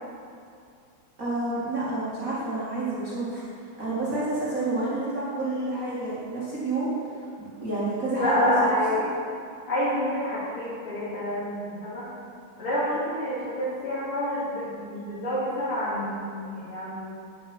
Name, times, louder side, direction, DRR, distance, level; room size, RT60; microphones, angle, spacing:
voice 1, 1.2-3.4 3.8-6.9 7.4-8.6, right 2 dB, 40° right, -9 dB, 2.6 m, -29 dB
voice 2, 8.2-9.1 9.7-12.1 12.6-17.0, left 1 dB, 80° left, -11 dB, 3.4 m, -28 dB
9.5 x 8.4 x 6.3 m, 2.4 s
omnidirectional pair, 2.3 m